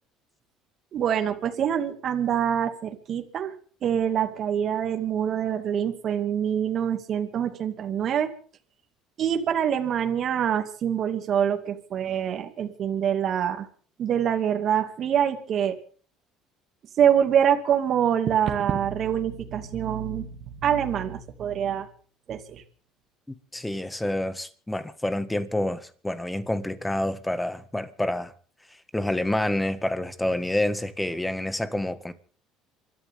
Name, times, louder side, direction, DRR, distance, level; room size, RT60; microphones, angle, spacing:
voice 1, 0.9-3.5 3.8-8.3 9.2-13.7 14.0-15.8 17.0-21.9 22.3-22.6, right 9 dB, 50° right, 2.4 m, -25 dB
voice 2, 23.3-28.3 28.9-32.1, left 1 dB, 10° left, 1.8 m, -28 dB
27.5 x 13.0 x 3.7 m
supercardioid pair, 90°, 0 cm